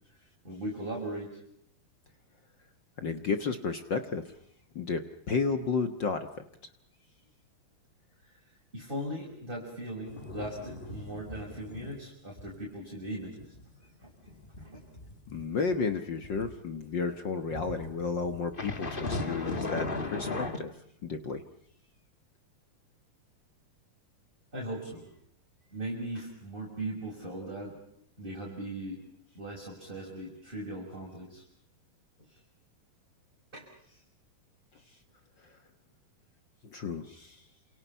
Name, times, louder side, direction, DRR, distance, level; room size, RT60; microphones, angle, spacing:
voice 1, 0.4-1.3 8.2-8.3 8.7-13.5 14.0-14.1 14.6-14.8 24.5-25.1 25.7-27.8 28.2-29.0 29.3-31.4 32.3-32.4 33.5-34.0, right 1 dB, 15° right, -3 dB, 6.2 m, -39 dB
voice 2, 3.0-4.3 4.7-6.3 15.3-20.7 21.0-21.4 36.7-37.4, left 4 dB, 65° left, 8 dB, 1.1 m, -32 dB
sound 1, 10.1-12.0 12.3-12.6 12.9-16.5 17.5-20.6, left 3 dB, 30° left, 1.0 m, -37 dB
29.0 x 28.0 x 5.7 m, 0.69 s
omnidirectional pair, 4.1 m